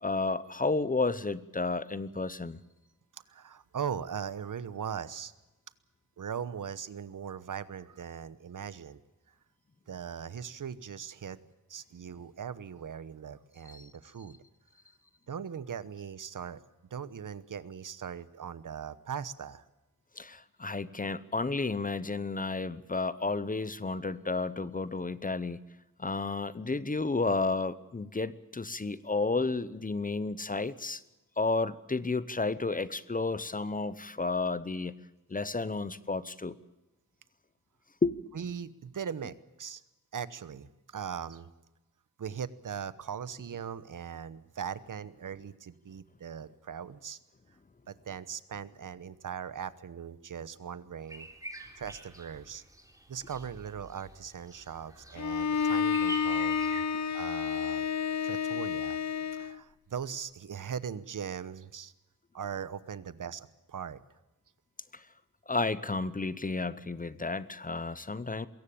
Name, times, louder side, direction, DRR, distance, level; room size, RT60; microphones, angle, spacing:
voice 1, 0.0-2.6 13.7-13.9 20.2-25.6 26.0-31.0 31.4-35.0 35.3-36.6 38.0-38.2 64.9-65.0 65.5-68.5, left 3 dB, 25° left, 16 dB, 0.8 m, -32 dB
voice 2, 3.1-5.3 6.2-9.0 9.9-11.4 11.7-14.4 15.3-16.6 16.9-19.6 38.3-39.8 40.1-40.7 40.9-41.5 42.2-47.2 47.9-51.3 51.8-52.6 53.1-56.5 57.1-57.9 58.2-59.0 59.3-61.9 62.3-64.0, right 7 dB, 70° right, 16 dB, 1.1 m, -39 dB
sound 1, 51.1-56.8, right 1 dB, 10° right, 3.6 m, -46 dB
Bowed string instrument, 55.2-59.6, left 6 dB, 55° left, 0.7 m, -30 dB
22.0 x 17.0 x 8.7 m, 1.0 s
wide cardioid pair, 105°, 33 cm